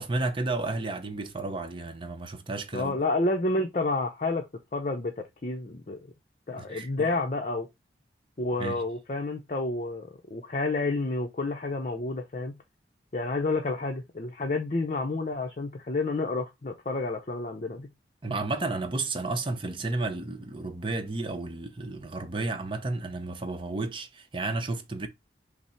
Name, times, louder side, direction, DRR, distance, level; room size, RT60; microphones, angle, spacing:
voice 1, 0.0-3.0 6.5-7.1 8.6-8.8 18.2-25.1, right 2 dB, 30° right, 0.7 m, -32 dB
voice 2, 2.7-4.5 4.7-6.0 6.5-7.7 8.4-12.5 13.1-17.9, left 2 dB, 45° left, 0.6 m, -30 dB
5.9 x 2.0 x 4.3 m
head